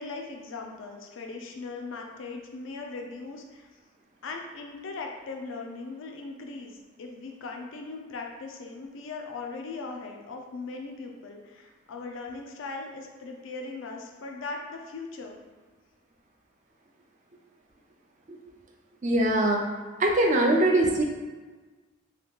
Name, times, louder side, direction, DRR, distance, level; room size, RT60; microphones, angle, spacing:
voice 1, 0.0-3.7 4.2-15.4, left 3 dB, 65° left, 2 dB, 0.4 m, -39 dB
voice 2, 19.0-19.7 20.0-21.0, right 1 dB, 35° right, 1 dB, 0.4 m, -22 dB
2.8 x 2.3 x 3.4 m, 1.3 s
head